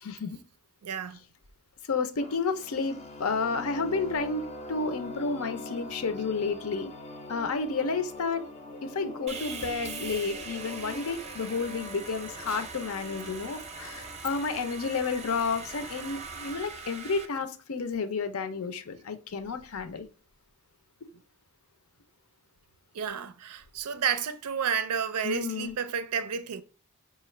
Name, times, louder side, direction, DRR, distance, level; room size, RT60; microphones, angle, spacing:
voice 1, 0.0-0.4 1.9-6.9 7.3-8.4 8.8-20.1 21.0-21.1 25.2-25.7, left 4 dB, 75° left, 0.6 m, -31 dB
voice 2, 0.8-1.2 22.9-26.6, right 7 dB, 90° right, 0.5 m, -31 dB
sound 1, 2.2-14.2, left 1 dB, 30° left, 0.5 m, -43 dB
Sawing, 9.3-17.2, right 4 dB, 30° right, 0.4 m, -41 dB
4.9 x 2.4 x 3.1 m
head